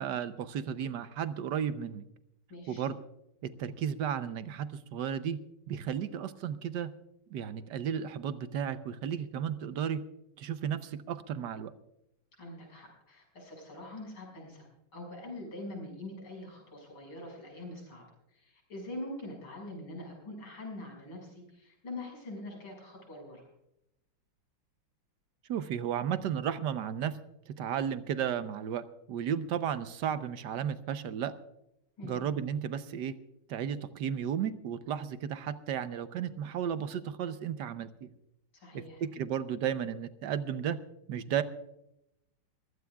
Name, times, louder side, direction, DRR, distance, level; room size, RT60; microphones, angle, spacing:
voice 1, 0.0-2.0 2.7-3.0 3.4-5.4 5.7-6.9 7.3-10.0 10.4-11.7 25.5-27.2 27.5-31.3 32.0-33.1 33.5-38.1 38.7-40.8 41.1-41.4, right 8 dB, 65° right, 12 dB, 1.3 m, -34 dB
voice 2, 2.5-2.8 12.4-14.7 14.9-23.5 32.0-32.2 38.5-39.0, left 1 dB, 85° left, 0 dB, 6.5 m, -44 dB
22.5 x 16.0 x 2.3 m, 0.83 s
omnidirectional pair, 2.2 m